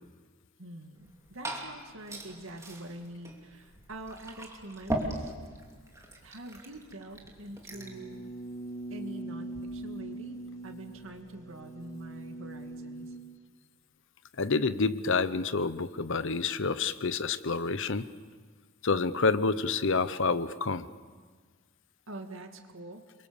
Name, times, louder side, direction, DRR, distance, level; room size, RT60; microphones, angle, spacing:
voice 1, 0.6-5.3 6.2-8.5 8.9-10.4 10.6-13.1 22.1-23.0, right 1 dB, 65° right, 4 dB, 2.4 m, -45 dB
Liquid, 0.9-8.0, right 1 dB, 15° right, 3.0 m, -40 dB
sound 1, 7.7-13.2, right 2 dB, 15° left, 3.6 m, -42 dB
voice 2, 14.4-18.1 18.8-20.9, left 4 dB, 60° left, 14 dB, 0.9 m, -28 dB
29.5 x 23.5 x 7.1 m, 1.5 s
head